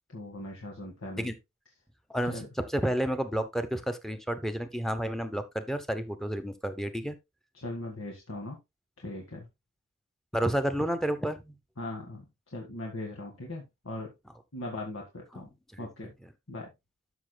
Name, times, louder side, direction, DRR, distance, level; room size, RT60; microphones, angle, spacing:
voice 1, 0.1-1.3 2.3-2.5 7.6-8.6 9.0-9.5 11.8-12.3 12.5-14.1 14.5-15.5 15.8-16.1 16.5-16.7, left 1 dB, 80° left, 1.9 m, -39 dB
voice 2, 2.1-7.2 10.3-11.5 15.7-15.9 16.2-16.3, right 1 dB, ahead, 0.9 m, -31 dB
13.0 x 6.2 x 2.3 m
head